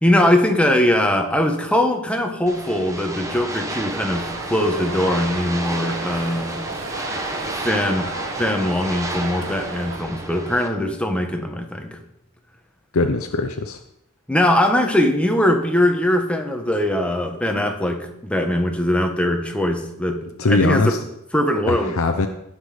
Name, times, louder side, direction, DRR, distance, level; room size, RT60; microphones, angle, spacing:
voice 1, 0.0-6.6 7.6-8.1 8.4-12.0 14.3-20.2 20.5-20.9 21.3-22.0, left 1 dB, 5° left, 4 dB, 1.2 m, -21 dB
sound 1, 2.5-10.7, right 2 dB, 15° right, 1.0 m, -31 dB
sound 2, 4.1-10.0, right 2 dB, 60° right, 1.7 m, -34 dB
voice 2, 12.9-13.8 20.4-21.0 21.7-22.3, left 3 dB, 75° left, 6 dB, 0.8 m, -20 dB
17.5 x 5.9 x 5.0 m, 0.82 s
head